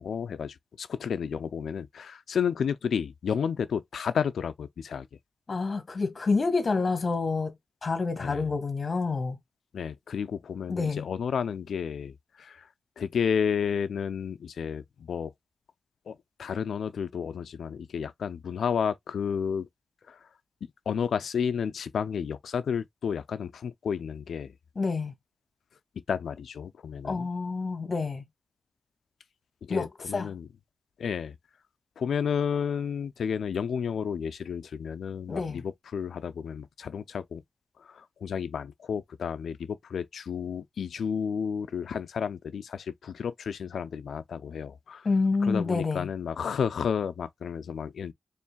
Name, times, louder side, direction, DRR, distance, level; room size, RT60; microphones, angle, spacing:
voice 1, 0.0-5.1 8.2-8.5 9.7-12.6 13.0-15.3 16.1-16.2 16.4-19.7 20.1-20.2 20.9-24.5 26.1-27.3 29.6-30.5 31.0-31.4 32.0-37.4 37.9-45.0 45.4-48.1, left 7 dB, 90° left, 0.4 m, -31 dB
voice 2, 5.5-7.5 7.8-9.4 10.7-11.1 24.7-25.1 27.0-28.2 29.7-29.9 30.1-30.3 35.3-35.6 45.0-46.1, left 4 dB, 55° left, 1.5 m, -28 dB
4.4 x 3.2 x 2.2 m
cardioid pair, 55°, 0 cm